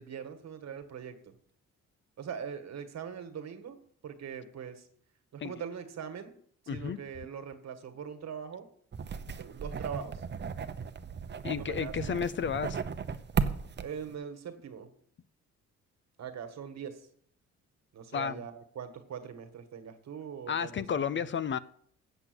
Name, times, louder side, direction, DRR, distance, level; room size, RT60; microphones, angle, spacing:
voice 1, 0.0-1.3 2.2-3.8 4.0-4.9 5.3-6.4 6.6-8.7 9.4-10.2 11.5-12.2 13.8-14.9 16.2-17.1 17.9-21.3, right 7 dB, 60° right, 8 dB, 1.6 m, -42 dB
voice 2, 6.7-7.0 11.4-12.8 18.1-18.4 20.5-21.6, left 7 dB, 40° left, 16 dB, 0.5 m, -32 dB
sound 1, 8.9-14.1, right 6 dB, 35° right, 0.8 m, -35 dB
7.9 x 7.4 x 7.9 m, 0.63 s
cardioid pair, 90°, 30 cm